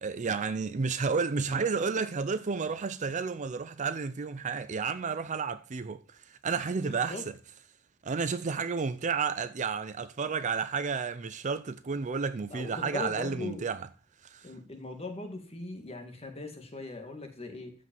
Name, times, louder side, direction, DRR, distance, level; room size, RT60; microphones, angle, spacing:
voice 1, 0.0-7.3 8.0-13.9 14.2-14.5, right 5 dB, 35° right, 0.4 m, -31 dB
voice 2, 6.8-7.2 12.5-13.7 14.4-17.7, left 3 dB, 25° left, 2.0 m, -40 dB
14.0 x 5.2 x 5.3 m
head